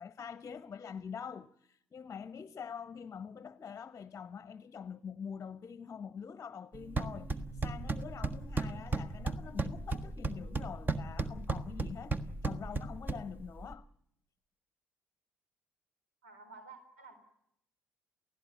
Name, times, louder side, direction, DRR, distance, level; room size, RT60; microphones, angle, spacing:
voice 1, 0.0-13.9, left 6 dB, 35° left, 0.9 m, -45 dB
sound 1, 6.7-13.7, right 3 dB, 25° right, 1.4 m, -36 dB
voice 2, 16.2-17.2, right 4 dB, 80° right, 3.9 m, -52 dB
29.0 x 16.0 x 9.3 m
figure-of-eight pair, 45°, 7 cm